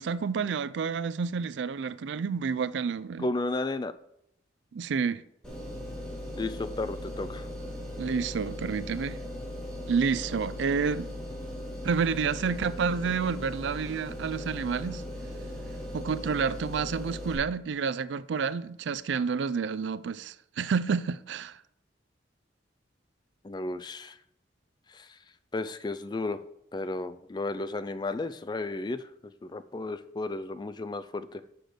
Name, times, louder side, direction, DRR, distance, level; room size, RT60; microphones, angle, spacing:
voice 1, 0.0-3.3 4.7-5.2 8.0-9.2 9.9-11.1 11.8-15.0 15.9-21.6, right 5 dB, 70° right, 0.4 m, -29 dB
voice 2, 3.2-3.9 6.4-7.5 23.4-24.2 24.9-25.2 25.5-26.4 26.7-29.1 29.4-31.4, left 2 dB, 25° left, 0.3 m, -33 dB
sound 1, 5.4-17.3, left 1 dB, 5° left, 2.7 m, -38 dB
6.4 x 6.1 x 5.0 m
head